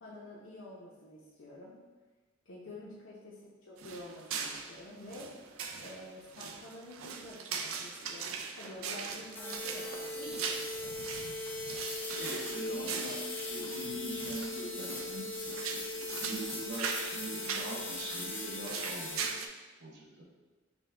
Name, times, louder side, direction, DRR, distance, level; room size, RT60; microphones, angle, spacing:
voice 1, 0.0-1.7 2.5-5.3 5.8-11.0, left 1 dB, 70° left, -7 dB, 0.7 m, -48 dB
sound 1, 3.8-19.5, right 6 dB, 85° right, 0.4 m, -41 dB
sound 2, 9.3-19.3, left 2 dB, 10° left, 0.4 m, -39 dB
voice 2, 12.1-19.2 19.8-20.2, right 1 dB, 55° right, -2 dB, 0.8 m, -42 dB
6.0 x 2.2 x 3.3 m, 1.3 s
head